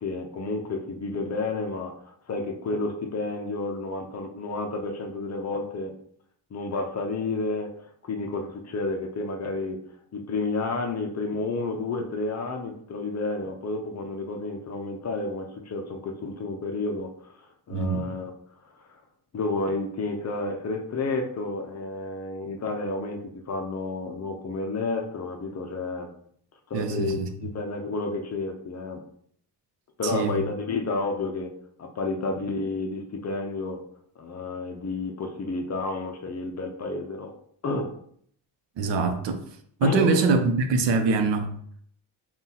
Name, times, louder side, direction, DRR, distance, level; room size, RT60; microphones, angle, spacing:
voice 1, 0.0-5.9 6.5-7.7 8.0-9.8 10.1-18.3 18.6-19.0 19.3-26.1 26.7-29.0 30.0-31.5 31.8-33.8 34.2-37.3 37.6-37.9 39.8-40.2, left 3 dB, 40° left, 0.5 m, -31 dB
voice 2, 17.7-18.1 26.7-27.3 30.1-30.3 38.8-39.4 39.8-41.5, right 4 dB, 85° right, 0.7 m, -23 dB
5.5 x 2.4 x 2.8 m
cardioid pair, 150°, 42 cm